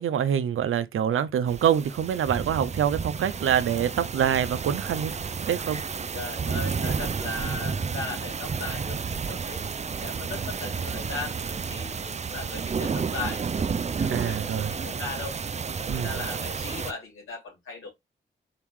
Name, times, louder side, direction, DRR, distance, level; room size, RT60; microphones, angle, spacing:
voice 1, 0.0-5.8 14.0-14.7 15.9-16.1, right 9 dB, 80° right, 0.6 m, -26 dB
sound 1, 1.5-16.9, right 5 dB, 35° right, 0.4 m, -31 dB
voice 2, 5.4-5.8 6.1-9.7 10.0-17.9, left 3 dB, 80° left, 2.9 m, -38 dB
4.8 x 3.0 x 3.7 m
supercardioid pair, 45°, 21 cm